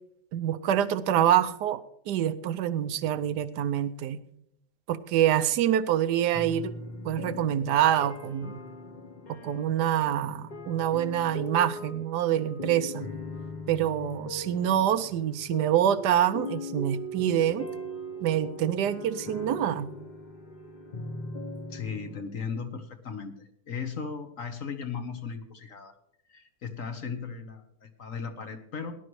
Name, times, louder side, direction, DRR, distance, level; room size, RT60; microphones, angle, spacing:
voice 1, 0.3-1.8 2.1-4.2 4.9-6.7 7.0-8.6 9.4-13.1 13.7-17.7 18.2-19.9, right 10 dB, 75° right, 13 dB, 1.2 m, -26 dB
sound 1, 6.2-22.2, left 1 dB, 35° left, 0.8 m, -40 dB
voice 2, 21.7-25.9 26.3-28.9, left 5 dB, 50° left, 8 dB, 1.2 m, -37 dB
18.5 x 11.0 x 3.1 m, 0.73 s
omnidirectional pair, 1.9 m